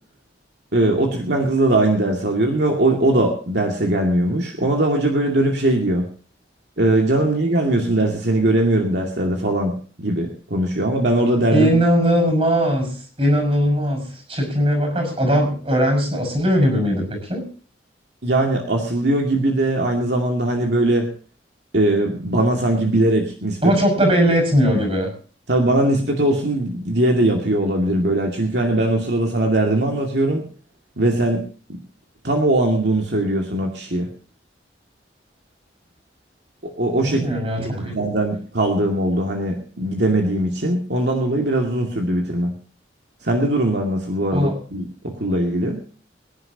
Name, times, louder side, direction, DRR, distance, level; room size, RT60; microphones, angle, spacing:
voice 1, 0.7-6.0 6.8-11.7 18.2-21.1 21.7-23.7 25.5-30.4 31.0-31.4 31.7-31.8 32.2-34.1 36.6-37.2 37.6-42.5 43.2-45.8, right 1 dB, 70° right, 1 dB, 2.4 m, -20 dB
voice 2, 11.5-17.5 23.6-25.1 37.0-37.9 44.3-44.6, equal, 30° right, 3 dB, 6.2 m, -19 dB
24.5 x 10.5 x 2.9 m, 0.40 s
head